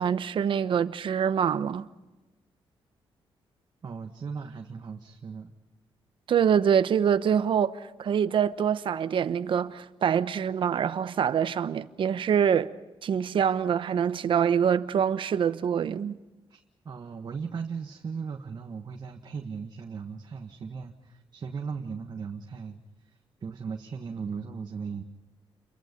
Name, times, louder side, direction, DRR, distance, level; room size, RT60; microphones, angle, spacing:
voice 1, 0.0-1.9 6.3-12.7 13.0-16.2, right 8 dB, 60° right, 1.0 m, -25 dB
voice 2, 3.8-5.5 16.5-25.0, right 5 dB, 45° right, 1.6 m, -37 dB
29.0 x 23.0 x 5.3 m
cardioid pair, 120°, 9 cm